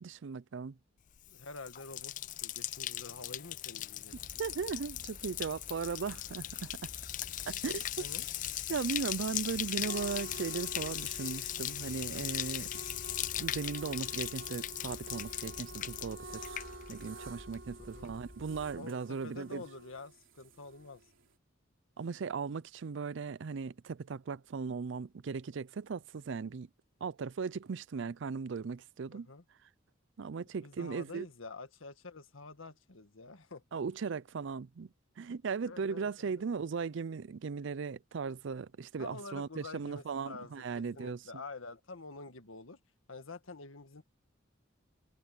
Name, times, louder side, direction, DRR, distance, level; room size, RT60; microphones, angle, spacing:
voice 1, 0.0-0.8 4.4-6.9 7.5-7.8 8.7-12.7 13.4-16.5 16.9-19.6 22.0-26.7 27.0-29.3 30.2-31.3 33.7-34.9 35.2-41.2, right 5 dB, 65° right, 0.4 m, -37 dB
Bathtub (filling or washing), 1.2-17.3 17.5-18.1, left 13 dB, 40° left, 0.4 m, -39 dB
voice 2, 1.3-4.4 7.6-8.3 17.9-18.1 18.7-21.0 29.1-29.4 30.6-33.6 35.6-36.4 39.0-42.8 43.1-44.0, left 3 dB, 80° left, 1.6 m, -48 dB
sound 1, 4.1-18.8, equal, 10° left, 2.6 m, -53 dB
sound 2, 8.9-21.3, right 2 dB, 80° right, 2.9 m, -50 dB
head